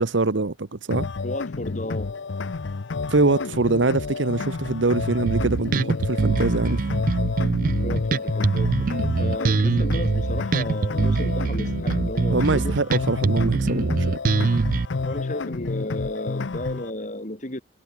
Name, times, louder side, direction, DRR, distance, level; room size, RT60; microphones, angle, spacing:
voice 1, 0.0-1.1 3.1-6.9 12.3-14.2, right 3 dB, 90° right, 1.0 m, -23 dB
sound 1, 0.9-16.9, left 4 dB, 85° left, 0.6 m, -30 dB
voice 2, 1.2-2.1 7.8-12.8 15.0-17.6, left 1 dB, 40° left, 3.0 m, -33 dB
Bass guitar, 5.3-14.9, right 4 dB, 45° right, 0.4 m, -23 dB
head